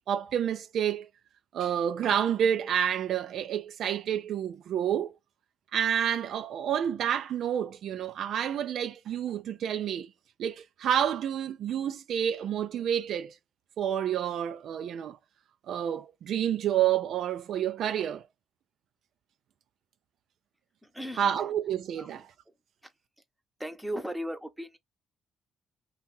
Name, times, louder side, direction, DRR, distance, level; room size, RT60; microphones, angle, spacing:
voice 1, 0.1-1.1 1.5-5.1 5.7-10.1 10.4-13.4 13.8-15.2 15.7-18.3 21.2-22.3, right 9 dB, 70° right, 0.3 m, -29 dB
voice 2, 23.6-24.8, equal, 5° right, 0.7 m, -36 dB
2.7 x 2.3 x 3.0 m
cardioid pair, 90°, 0 cm